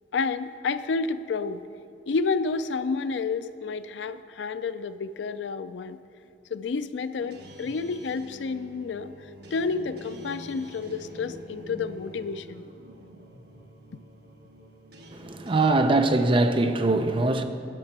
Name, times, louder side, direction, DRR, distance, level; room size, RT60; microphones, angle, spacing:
voice 1, 0.1-1.6 2.1-6.0 6.5-9.1 9.5-12.6, left 4 dB, 85° left, 0.4 m, -30 dB
sound 1, 7.2-15.7, equal, 65° right, 1.2 m, -46 dB
voice 2, 15.1-17.4, right 2 dB, 30° right, 0.6 m, -22 dB
10.5 x 6.4 x 6.0 m
head